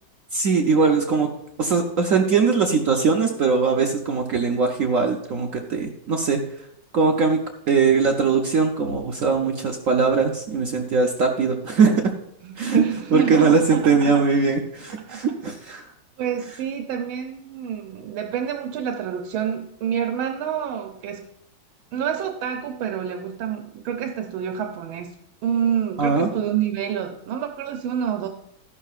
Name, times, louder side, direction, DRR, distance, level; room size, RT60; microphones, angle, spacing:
voice 1, 0.3-1.3 1.6-6.4 6.9-7.4 7.7-12.0 12.6-12.8 13.1-15.8 26.0-26.3, right 5 dB, 65° right, 3 dB, 0.8 m, -20 dB
voice 2, 12.4-14.1 15.0-15.2 16.2-21.2 21.9-25.1 25.4-28.3, right 8 dB, 85° right, 4 dB, 1.5 m, -27 dB
13.5 x 11.0 x 2.4 m, 0.77 s
omnidirectional pair, 2.2 m